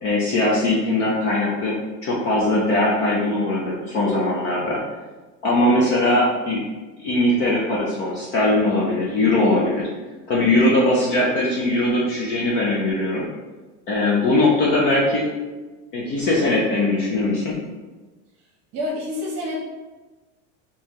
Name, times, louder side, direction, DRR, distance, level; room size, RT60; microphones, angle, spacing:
voice 1, 0.0-4.8 5.4-6.6 7.0-9.9 10.3-13.3 13.9-15.3 15.9-17.6, left 2 dB, 30° left, -4 dB, 0.5 m, -20 dB
voice 2, 18.7-19.6, left 2 dB, 35° right, -4 dB, 0.9 m, -27 dB
5.3 x 2.8 x 3.0 m, 1.2 s
cardioid pair, 175°, 39 cm